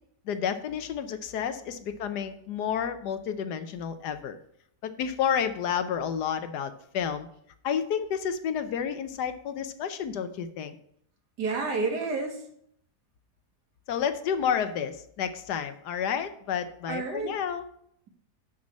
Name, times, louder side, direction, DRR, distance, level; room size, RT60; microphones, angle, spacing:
voice 1, 0.3-4.4 4.8-7.3 7.6-10.8 13.9-17.6, left 8 dB, 75° left, 10 dB, 1.3 m, -30 dB
voice 2, 11.4-12.5 16.9-17.4, right 3 dB, 75° right, 2 dB, 2.2 m, -30 dB
6.4 x 5.9 x 7.3 m, 0.71 s
omnidirectional pair, 1.8 m